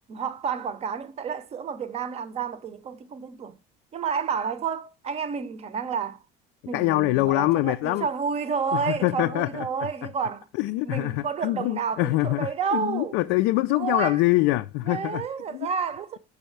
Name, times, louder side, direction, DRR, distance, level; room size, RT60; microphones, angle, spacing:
voice 1, 0.1-3.6 3.9-6.2 6.7-10.4 10.8-13.2 13.7-14.2 14.8-16.2, right 6 dB, 30° right, 0.6 m, -30 dB
voice 2, 6.7-8.1 8.7-9.7 10.5-15.2 15.5-15.7, left 18 dB, 75° left, 0.4 m, -24 dB
5.6 x 5.4 x 4.5 m
cardioid pair, 145°, 20 cm